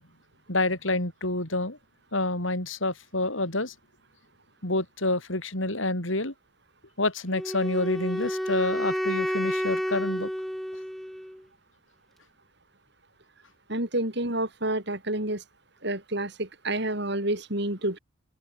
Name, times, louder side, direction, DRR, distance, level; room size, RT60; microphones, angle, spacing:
voice 1, 0.5-1.8 2.1-3.7 4.6-6.3 7.0-10.3, left 2 dB, 85° left, 7.3 m, -28 dB
Wind instrument woodwind instrument, 7.3-11.4, equal, ahead, 2.3 m, -30 dB
voice 2, 13.7-15.4 15.8-18.0, right 1 dB, 60° right, 6.3 m, -29 dB
open air
head